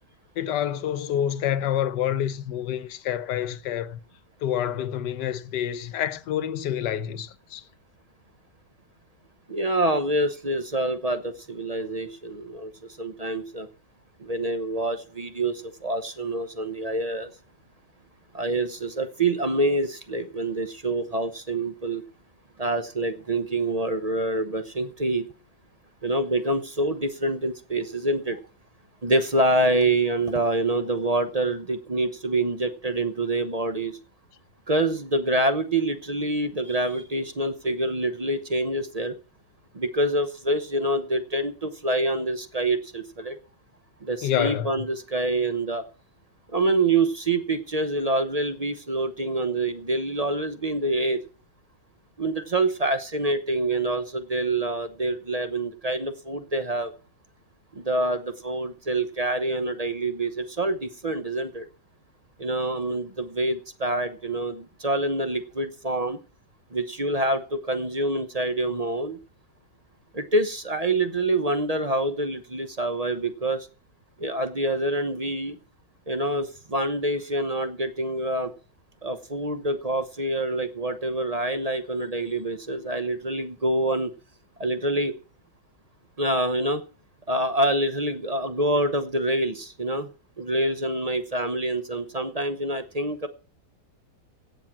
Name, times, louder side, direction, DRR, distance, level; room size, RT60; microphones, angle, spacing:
voice 1, 0.4-4.0 4.4-7.6 44.2-44.7, left 10 dB, 80° left, 1.4 m, -27 dB
voice 2, 9.5-12.7 13.0-13.7 14.2-17.3 18.3-22.0 22.6-25.2 26.0-28.4 29.0-34.0 34.7-39.1 39.7-43.4 44.0-45.8 46.5-51.2 52.2-56.9 57.8-61.6 62.4-66.2 66.7-69.2 70.1-73.7 74.2-75.5 76.1-78.5 79.0-84.1 84.6-85.1 86.2-86.8 87.3-90.1 90.4-93.3, right 2 dB, 30° right, 0.7 m, -26 dB
16.5 x 7.5 x 6.0 m
omnidirectional pair, 1.8 m